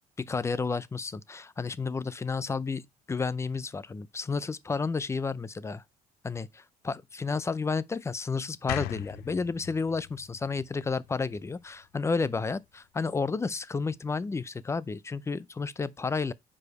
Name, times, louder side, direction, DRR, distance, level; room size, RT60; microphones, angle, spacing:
voice 1, 0.2-2.8 3.1-5.8 6.2-16.3, left 4 dB, 15° left, 0.4 m, -31 dB
sound 1, 8.7-11.8, left 15 dB, 80° left, 0.5 m, -40 dB
4.9 x 4.8 x 4.7 m
cardioid pair, 110°, 16 cm